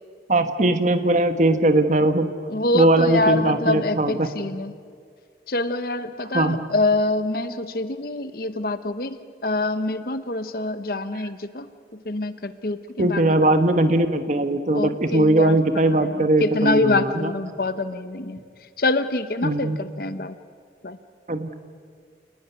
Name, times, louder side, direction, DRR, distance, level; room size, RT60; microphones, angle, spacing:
voice 1, 0.3-2.3 2.7-4.3 6.3-6.6 13.0-17.3 19.4-19.8 21.3-21.5, right 1 dB, 45° right, 8 dB, 1.3 m, -20 dB
voice 2, 2.5-4.7 5.5-11.7 12.1-13.5 14.7-18.4 18.8-20.3 20.8-21.0, left 2 dB, 55° left, 11 dB, 1.0 m, -25 dB
29.0 x 19.0 x 9.6 m, 2.1 s
head